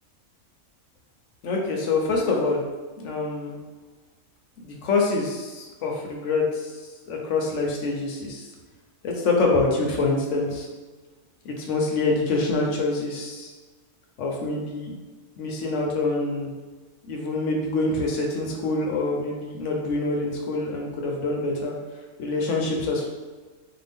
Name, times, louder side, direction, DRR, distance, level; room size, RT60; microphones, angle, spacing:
voice 1, 1.4-2.6 3.0-3.6 4.6-8.5 9.0-10.7 11.4-13.5 14.2-14.9 15.4-16.5 17.1-21.8 22.2-23.1, left 3 dB, 70° left, 0 dB, 0.9 m, -26 dB
2.7 x 2.3 x 3.4 m, 1.3 s
omnidirectional pair, 1.4 m